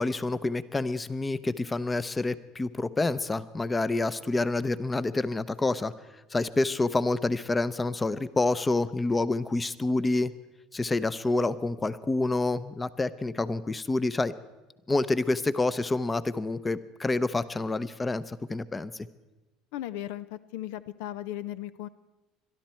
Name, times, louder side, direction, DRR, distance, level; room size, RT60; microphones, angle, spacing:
voice 1, 0.0-5.9 6.3-10.3 10.7-14.3 14.9-19.1, left 2 dB, 20° left, 16 dB, 0.7 m, -28 dB
voice 2, 19.7-21.9, left 13 dB, 80° left, 16 dB, 0.5 m, -36 dB
22.5 x 12.5 x 4.5 m, 1.1 s
supercardioid pair, 95°, 0 cm